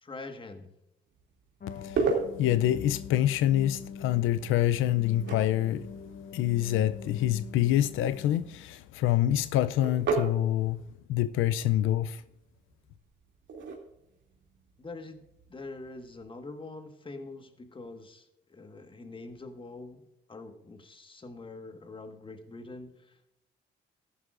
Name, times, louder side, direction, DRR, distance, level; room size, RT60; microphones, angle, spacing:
voice 1, 0.0-0.7 14.8-20.0 20.3-23.2, left 3 dB, 25° left, 1.5 m, -44 dB
sound 1, 1.1-16.2, right 4 dB, 70° right, 2.6 m, -38 dB
sound 2, 1.6-8.7, left 5 dB, 45° left, 1.1 m, -44 dB
voice 2, 2.4-5.8 6.3-10.8 11.1-12.2, left 12 dB, 85° left, 0.5 m, -26 dB
14.0 x 11.0 x 2.5 m
cardioid pair, 90°, 20 cm